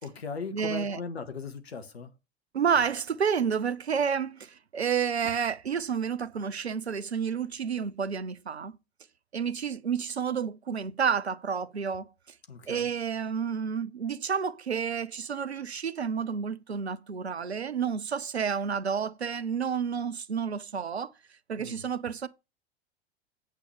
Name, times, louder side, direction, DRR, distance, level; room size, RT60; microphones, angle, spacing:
voice 1, 0.0-2.1 12.5-12.9 21.6-21.8, left 4 dB, 80° left, 1.6 m, -38 dB
voice 2, 0.5-1.0 2.5-8.7 9.3-12.1 12.7-21.1 21.5-22.3, right 6 dB, 85° right, 0.7 m, -30 dB
8.6 x 8.3 x 3.4 m
figure-of-eight pair, 85°, 31 cm